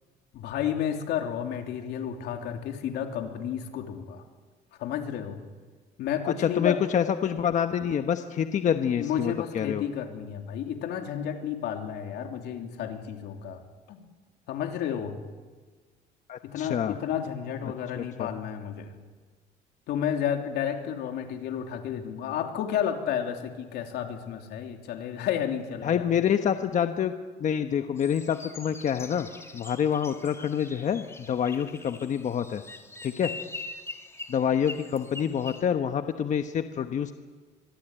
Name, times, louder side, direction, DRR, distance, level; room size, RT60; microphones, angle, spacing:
voice 1, 0.3-4.2 4.8-5.4 6.0-6.8 9.0-13.6 13.9-14.1 14.5-15.2 16.4-18.9 19.9-26.1, left 9 dB, 80° left, 4 dB, 3.4 m, -31 dB
voice 2, 6.3-9.8 16.3-16.9 18.0-18.3 25.8-27.1 27.4-29.3 29.5-32.6 33.0-33.3 34.3-37.1, left 8 dB, 45° left, 8 dB, 1.2 m, -27 dB
sound 1, 28.0-35.6, left 3 dB, 15° left, 3.0 m, -43 dB
25.0 x 22.5 x 9.1 m, 1.4 s
cardioid pair, 110°, 17 cm